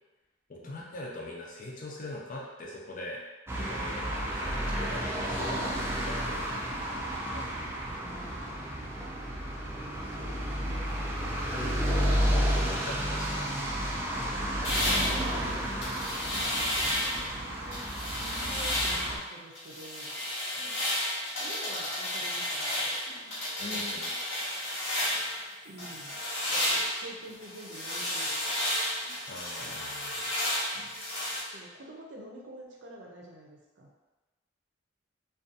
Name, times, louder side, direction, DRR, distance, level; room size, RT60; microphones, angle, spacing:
voice 1, 0.5-3.2 3.5-6.7 7.3-7.8 10.2-10.4 11.5-12.1 12.6-13.5 23.6-24.1 29.3-30.1, left 2 dB, 45° left, -3 dB, 0.5 m, -42 dB
sound 1, 3.5-19.2, equal, 15° right, 0.3 m, -32 dB
voice 2, 7.8-9.2 10.6-11.2 14.8-15.6 16.2-20.2 21.4-23.3 25.6-26.2 26.5-28.6 31.5-33.9, right 1 dB, 75° right, -1 dB, 0.6 m, -47 dB
sound 2, 14.6-17.3 17.7-19.2 19.5-25.4 25.8-31.4, left 1 dB, 75° left, 1.1 m, -32 dB
2.5 x 2.3 x 2.6 m, 1.2 s
head